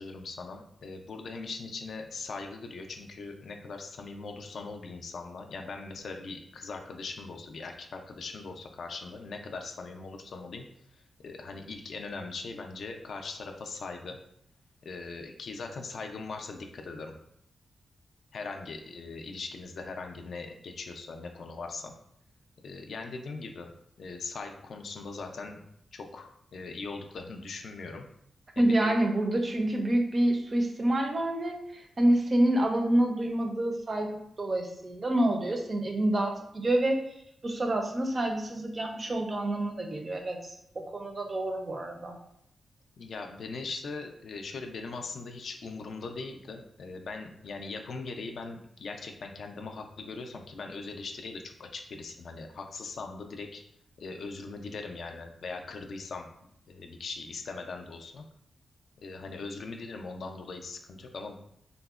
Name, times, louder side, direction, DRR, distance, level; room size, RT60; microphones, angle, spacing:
voice 1, 0.0-10.7 10.9-14.2 14.8-17.2 18.3-21.9 22.6-23.7 24.0-25.6 25.9-28.1 28.6-29.0 43.0-53.6 54.0-56.3 56.7-58.2 59.0-61.4, left 4 dB, 65° left, 4 dB, 0.3 m, -40 dB
voice 2, 28.6-37.0 37.4-42.1, right 1 dB, 35° right, 3 dB, 0.4 m, -27 dB
3.6 x 2.0 x 2.3 m, 0.72 s
wide cardioid pair, 135°, 0 cm